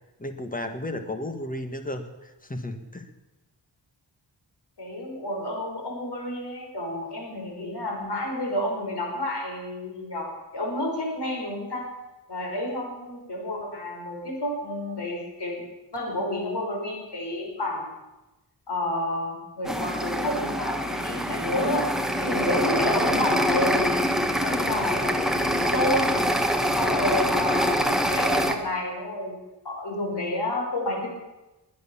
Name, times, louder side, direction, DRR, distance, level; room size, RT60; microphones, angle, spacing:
voice 1, 0.2-3.1, left 1 dB, 20° left, 7 dB, 1.6 m, -34 dB
voice 2, 4.8-10.3 10.5-11.8 12.3-15.5 15.9-17.9 18.7-21.9 22.2-23.9 24.4-26.2 26.7-29.3 29.6-31.1, left 1 dB, 70° left, 0 dB, 5.6 m, -30 dB
sound 1, 19.6-28.5, equal, ahead, 1.4 m, -25 dB
21.0 x 9.5 x 7.2 m, 1.1 s
wide cardioid pair, 135°, 42 cm